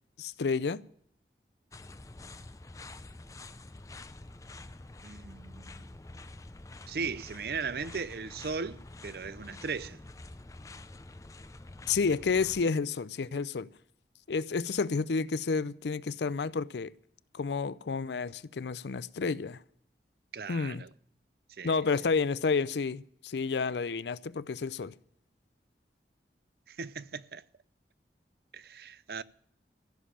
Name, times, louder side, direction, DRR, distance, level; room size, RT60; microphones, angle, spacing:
voice 1, 0.2-0.8 11.9-13.7 14.3-16.9 17.3-19.6 20.5-20.8 21.6-24.9, left 4 dB, 80° left, 0.5 m, -30 dB
sound 1, 1.7-12.7, left 2 dB, 20° left, 0.5 m, -47 dB
voice 2, 5.0-6.0 6.9-10.0 20.3-20.9 21.5-21.9 26.7-27.4 28.5-29.2, right 5 dB, 60° right, 0.5 m, -38 dB
15.5 x 7.3 x 8.8 m
head